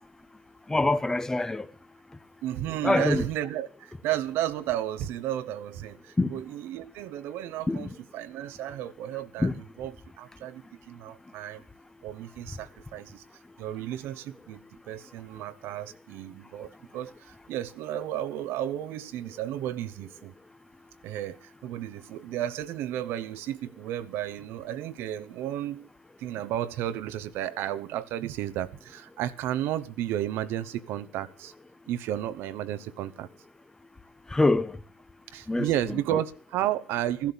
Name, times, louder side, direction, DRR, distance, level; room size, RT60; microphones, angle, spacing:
voice 1, 0.7-1.7 2.8-3.2 6.2-6.4 7.7-7.8 9.4-9.6 34.3-34.8 35.5-35.7, left 2 dB, 15° left, 0.9 m, -24 dB
voice 2, 2.4-11.6 12.0-13.2 13.6-20.3 21.0-25.9 26.2-31.5 31.9-33.3 35.3-37.3, right 12 dB, 70° right, 1.0 m, -33 dB
14.5 x 12.0 x 7.1 m
supercardioid pair, 80°, 4 cm